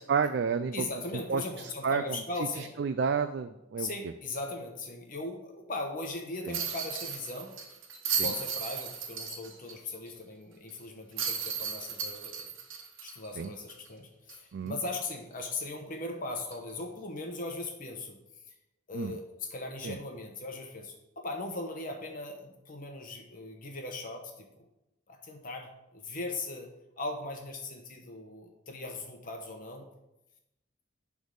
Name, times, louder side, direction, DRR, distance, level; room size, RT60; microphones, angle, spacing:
voice 1, 0.1-0.9 1.3-2.2 2.6-3.9 6.4-6.6 8.2-8.3 13.4-13.5 14.5-14.7 18.9-19.2 19.8-20.0, right 5 dB, 60° right, 10 dB, 0.3 m, -30 dB
voice 2, 0.7-2.7 3.8-7.5 8.2-12.5 13.0-18.2 18.9-24.5 25.1-26.7 27.0-29.9, left 2 dB, 45° left, 3 dB, 0.9 m, -39 dB
sound 1, 6.5-9.7 10.1-10.2 11.2-13.9 14.3-14.4 16.5-16.7, right 6 dB, 80° right, 1.3 m, -35 dB
10.5 x 3.6 x 6.3 m, 0.91 s
head